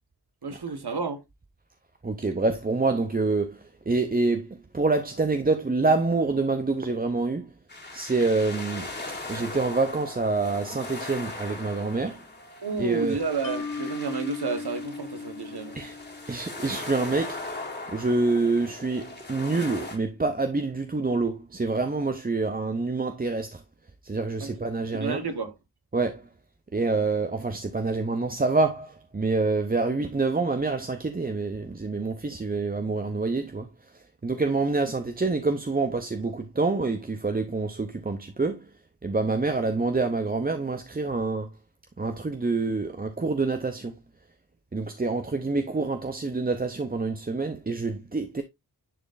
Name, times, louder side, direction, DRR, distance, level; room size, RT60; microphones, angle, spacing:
voice 1, 0.4-1.2 12.6-15.8 24.4-24.6 24.9-25.5, right 4 dB, 75° right, 1.3 m, -31 dB
voice 2, 2.0-7.5 7.9-8.9 9.3-12.2 12.7-13.2 15.7-15.9 16.3-17.4 17.9-23.6 24.0-25.3 25.9-26.2 26.7-33.7 34.2-38.7 39.0-41.5 42.0-43.9 44.7-48.4, right 3 dB, 25° right, 0.6 m, -27 dB
sound 1, 7.7-20.0, left 2 dB, 25° left, 2.2 m, -39 dB
Mallet percussion, 13.4-16.7, left 5 dB, 55° left, 1.1 m, -37 dB
10.0 x 4.2 x 2.5 m
wide cardioid pair, 65°, 40 cm